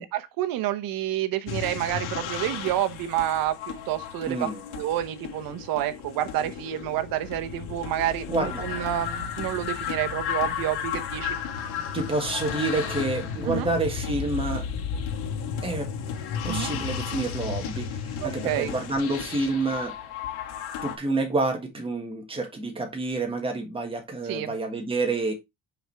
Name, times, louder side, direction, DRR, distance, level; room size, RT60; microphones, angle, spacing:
voice 1, 0.1-3.5 3.9-4.5 4.7-11.4 13.4-13.7 16.4-16.7 18.2-18.7 24.2-24.5, right 13 dB, 65° right, 0.9 m, -29 dB
sound 1, 1.5-21.0, left 7 dB, 90° left, 1.6 m, -33 dB
voice 2, 4.3-4.6 8.3-8.6 11.9-14.6 15.6-15.9 16.4-17.9 18.2-19.9 20.8-25.3, right 2 dB, 15° right, 1.6 m, -28 dB
5.9 x 5.0 x 3.4 m
cardioid pair, 170°, 37 cm